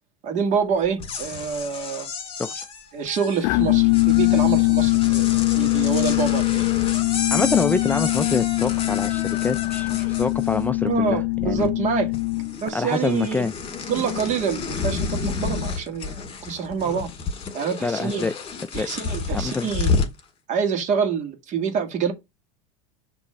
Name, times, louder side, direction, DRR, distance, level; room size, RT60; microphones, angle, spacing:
voice 1, 0.2-2.1 2.9-5.2 5.5-6.7 10.8-12.1 12.6-13.5 13.9-17.1 17.5-18.2 18.7-19.9 20.5-22.1, right 6 dB, 40° right, 1.9 m, -26 dB
sound 1, 0.8-10.9 11.2-11.9 12.1-20.2, left 5 dB, 30° left, 2.0 m, -31 dB
sound 2, 3.4-12.7, left 24 dB, 70° left, 0.5 m, -22 dB
voice 2, 7.3-11.7 12.7-13.5 17.8-18.3 18.7-18.9 19.3-19.7, left 4 dB, 10° left, 0.3 m, -26 dB
6.2 x 3.1 x 5.2 m
supercardioid pair, 110°, 18 cm